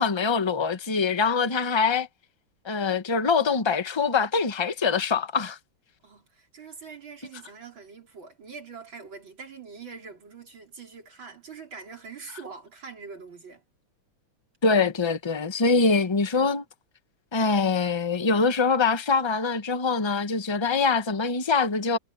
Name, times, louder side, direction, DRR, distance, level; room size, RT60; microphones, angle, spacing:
voice 1, 0.0-2.1 2.6-5.6 14.6-16.6 17.3-22.0, left 4 dB, 40° left, 0.4 m, -24 dB
voice 2, 6.0-13.6, right 5 dB, 60° right, 4.8 m, -44 dB
omnidirectional pair, 2.4 m